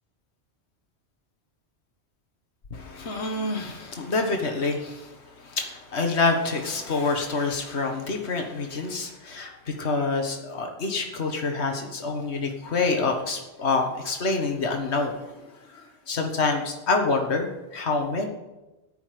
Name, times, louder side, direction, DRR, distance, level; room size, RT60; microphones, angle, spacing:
voice 1, 2.7-18.3, left 3 dB, 75° left, 3 dB, 1.8 m, -27 dB
14.5 x 5.7 x 9.2 m, 1.0 s
omnidirectional pair, 1.1 m